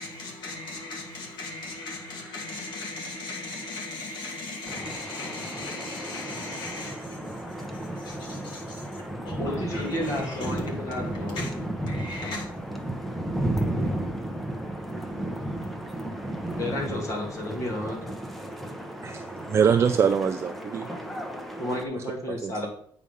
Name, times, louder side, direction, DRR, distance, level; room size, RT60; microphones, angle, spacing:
voice 1, 0.0-12.5, left 3 dB, 55° left, 2.5 m, -38 dB
sound 1, 4.7-21.9, right 1 dB, ahead, 0.8 m, -33 dB
voice 2, 9.4-11.4 16.6-18.0 20.9-21.0 21.6-22.7, left 1 dB, 35° left, 1.8 m, -32 dB
voice 3, 19.0-20.9 22.0-22.1 22.4-22.7, right 7 dB, 30° right, 0.4 m, -24 dB
8.5 x 4.9 x 5.4 m
cardioid pair, 165°, 9 cm